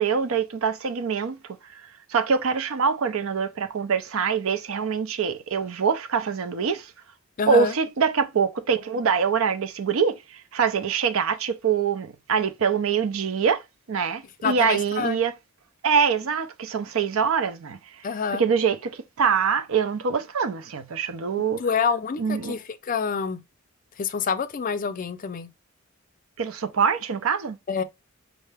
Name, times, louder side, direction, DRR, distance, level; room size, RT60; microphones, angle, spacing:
voice 1, 0.0-1.8 2.1-6.9 7.5-13.6 13.9-15.3 15.8-17.8 18.4-21.6 22.2-22.6 26.4-27.6, right 6 dB, 75° right, 0.5 m, -24 dB
voice 2, 7.4-7.7 14.4-15.2 18.0-18.4 21.6-23.4 24.0-25.5 27.7-27.8, left 6 dB, 40° left, 0.4 m, -27 dB
5.5 x 2.0 x 3.3 m
head